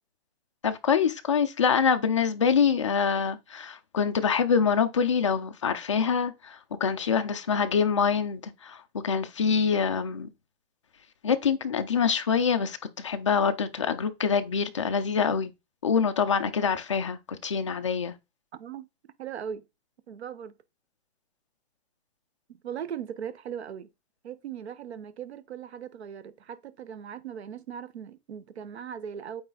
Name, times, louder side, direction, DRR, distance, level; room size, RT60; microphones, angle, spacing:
voice 1, 0.6-10.3 11.2-15.5 15.8-18.1, left 6 dB, 30° left, 0.4 m, -25 dB
voice 2, 18.5-18.9 19.2-19.6 20.1-20.5 22.6-23.9 24.2-29.4, right 8 dB, 80° right, 0.9 m, -38 dB
8.7 x 3.3 x 3.9 m
hypercardioid pair, 175°, 32 cm